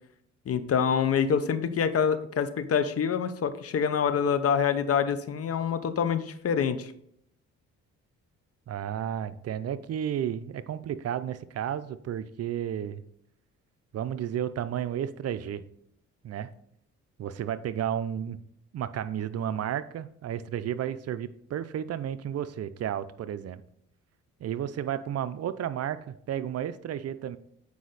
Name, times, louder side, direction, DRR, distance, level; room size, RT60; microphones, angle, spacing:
voice 1, 0.5-6.9, left 7 dB, 50° left, 11 dB, 0.8 m, -26 dB
voice 2, 8.7-13.0 13.9-15.6 16.2-16.5 17.2-18.4 18.7-23.6 24.4-27.4, right 9 dB, 55° right, 13 dB, 0.5 m, -32 dB
8.3 x 5.0 x 4.0 m, 0.69 s
cardioid pair, 90°, 30 cm